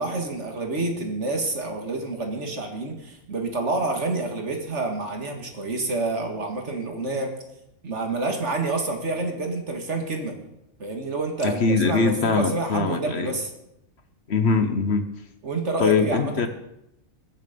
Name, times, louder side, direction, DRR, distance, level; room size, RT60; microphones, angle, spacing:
voice 1, 0.0-7.3 7.8-10.4 10.8-13.5 15.4-16.3, right 2 dB, 55° right, 3 dB, 2.3 m, -28 dB
voice 2, 11.4-13.4 14.3-15.0 15.8-16.5, left 4 dB, 55° left, 9 dB, 1.1 m, -22 dB
21.5 x 7.3 x 5.2 m, 0.84 s
omnidirectional pair, 1.4 m